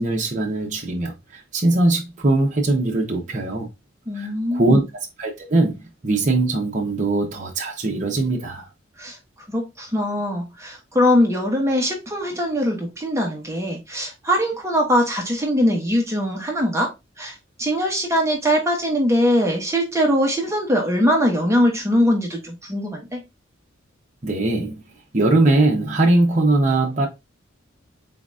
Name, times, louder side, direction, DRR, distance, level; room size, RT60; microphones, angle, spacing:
voice 1, 0.0-3.7 4.2-4.8 5.2-8.6 24.2-24.8 25.1-27.1, right 2 dB, 40° right, 0.9 m, -21 dB
voice 2, 4.1-4.8 9.0-9.2 9.5-16.9 17.2-23.2, equal, 15° right, 1.1 m, -21 dB
4.2 x 3.9 x 2.4 m
head